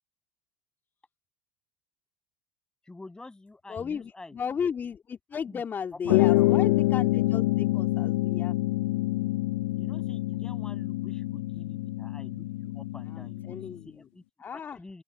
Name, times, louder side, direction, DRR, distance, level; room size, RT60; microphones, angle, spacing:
voice 1, 2.8-4.4 5.3-6.5 9.8-14.2 14.5-15.0, left 2 dB, 10° left, 8.0 m, -48 dB
voice 2, 3.7-8.5 13.1-14.0 14.4-14.8, left 7 dB, 30° left, 2.9 m, -35 dB
sound 1, 6.1-13.8, left 19 dB, 75° left, 1.4 m, -26 dB
open air
hypercardioid pair, 80°, 6 cm